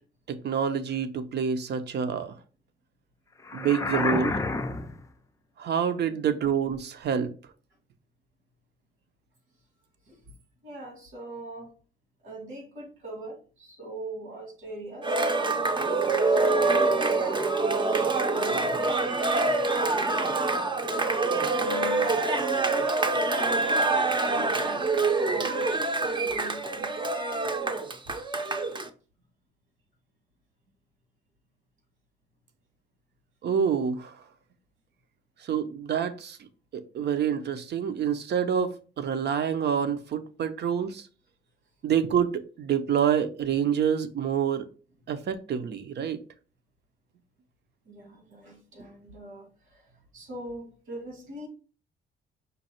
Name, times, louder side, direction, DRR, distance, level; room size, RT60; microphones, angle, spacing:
voice 1, 0.3-2.3 3.5-4.4 5.6-7.3 33.4-34.1 35.4-36.5 36.7-41.0 41.8-44.7 45.1-46.2, right 7 dB, 60° right, 0.7 m, -27 dB
sound 1, 3.4-5.1, left 3 dB, 15° left, 0.4 m, -29 dB
voice 2, 10.6-11.7 12.2-19.0 20.8-21.2 21.5-27.0 28.1-28.2 47.9-51.5, right 2 dB, 85° right, 1.8 m, -41 dB
Cheering, 15.0-28.9, right 3 dB, 25° right, 0.6 m, -25 dB
5.3 x 2.3 x 4.3 m
cardioid pair, 90°, 20 cm